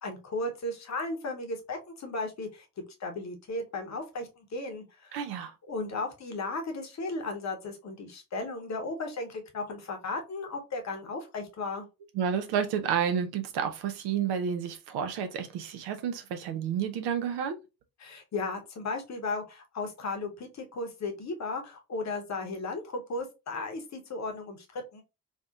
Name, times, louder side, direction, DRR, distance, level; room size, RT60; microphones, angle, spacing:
voice 1, 0.0-2.7 3.0-5.2 5.7-11.9 18.0-25.0, left 3 dB, 35° left, 1.1 m, -35 dB
voice 2, 5.1-5.5 12.1-17.6, right 8 dB, 55° right, 0.8 m, -30 dB
4.2 x 2.9 x 2.4 m
figure-of-eight pair, 40°, 46 cm